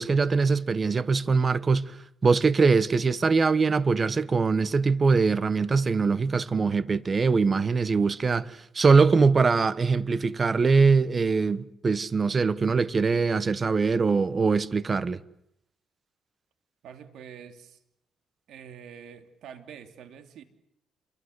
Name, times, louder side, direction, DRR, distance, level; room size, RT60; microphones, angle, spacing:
voice 1, 0.0-2.0 2.2-15.2, right 4 dB, 35° right, 1.2 m, -22 dB
voice 2, 16.8-17.8 18.5-20.4, right 8 dB, 75° right, 2.9 m, -46 dB
28.5 x 23.5 x 8.1 m
cardioid pair, 90°, 0 cm